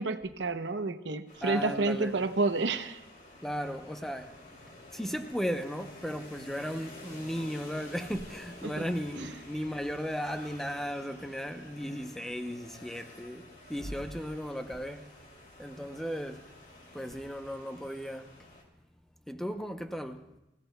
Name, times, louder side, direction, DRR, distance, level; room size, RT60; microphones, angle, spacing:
voice 1, 0.0-3.0 8.6-8.8 9.2-9.3, right 3 dB, 80° right, 0.8 m, -30 dB
sound 1, 1.3-18.6, left 2 dB, 45° left, 2.8 m, -51 dB
voice 2, 1.4-2.1 3.4-4.3 4.9-15.1 15.6-16.5 16.9-18.5 19.3-20.3, equal, ahead, 0.7 m, -36 dB
28.0 x 16.0 x 2.3 m
head